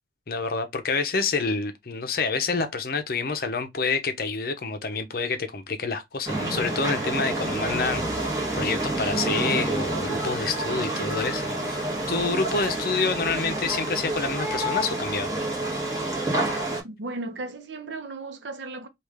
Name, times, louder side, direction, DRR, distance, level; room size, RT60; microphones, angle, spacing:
voice 1, 0.3-8.0 8.3-11.8 12.1-15.4, left 4 dB, 55° left, 0.6 m, -28 dB
sound 1, 6.3-16.8, right 1 dB, 20° right, 1.3 m, -28 dB
voice 2, 16.8-18.9, right 2 dB, 85° right, 0.7 m, -35 dB
3.2 x 2.4 x 3.5 m
head